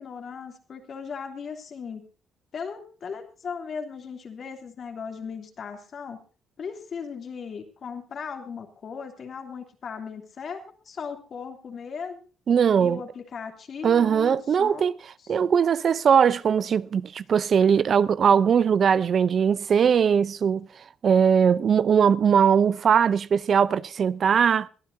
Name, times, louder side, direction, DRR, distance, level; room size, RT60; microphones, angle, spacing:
voice 1, 0.0-2.0 2.5-6.2 6.6-12.2 12.8-14.8 15.2-15.4, left 6 dB, 55° left, 3.0 m, -37 dB
voice 2, 12.5-13.0 13.8-14.9 15.3-20.7 21.0-24.7, right 7 dB, 55° right, 0.6 m, -20 dB
22.5 x 12.5 x 2.7 m
cardioid pair, 90°, 0 cm